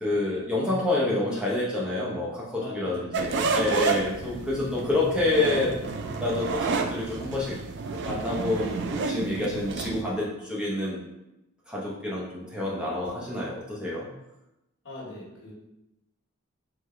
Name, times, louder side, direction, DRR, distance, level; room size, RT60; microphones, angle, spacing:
voice 1, 0.0-5.8 6.2-7.6 8.1-11.0 11.7-14.1, left 2 dB, 5° right, -6 dB, 0.6 m, -28 dB
voice 2, 2.6-3.5 3.9-4.2 14.8-15.5, left 1 dB, 55° left, -5 dB, 1.4 m, -42 dB
sound 1, 3.1-10.0, right 4 dB, 50° right, 0.3 m, -30 dB
3.7 x 3.4 x 3.2 m, 0.91 s
head